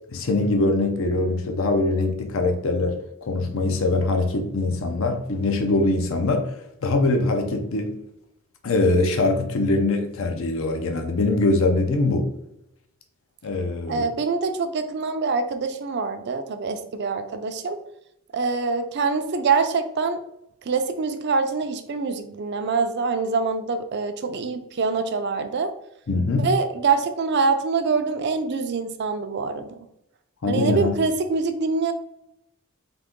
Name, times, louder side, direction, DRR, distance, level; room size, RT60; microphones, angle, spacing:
voice 1, 0.1-6.5 6.8-7.9 8.6-12.3 13.4-14.1 26.1-26.5 30.4-31.0, left 2 dB, 65° left, 5 dB, 0.6 m, -22 dB
voice 2, 13.9-17.8 18.3-20.2 20.7-25.7 26.4-29.7 30.5-31.9, right 4 dB, 50° right, 8 dB, 0.4 m, -25 dB
3.8 x 2.9 x 3.6 m, 0.80 s
head